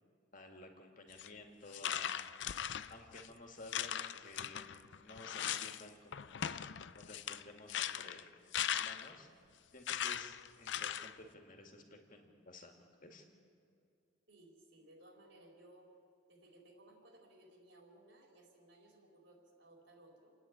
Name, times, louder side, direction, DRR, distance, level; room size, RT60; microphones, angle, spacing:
voice 1, 0.3-2.1 2.9-6.4 6.9-8.3 8.7-9.3 9.7-13.2, left 2 dB, 40° left, 3 dB, 2.3 m, -54 dB
sound 1, 1.1-1.3 1.7-3.3 3.7-5.8 6.1-9.2 9.9-11.1, left 10 dB, 60° left, 0.5 m, -39 dB
voice 2, 14.3-15.9 16.3-20.4, right 1 dB, 65° right, 0 dB, 4.5 m, -61 dB
29.5 x 10.0 x 8.8 m, 2.4 s
head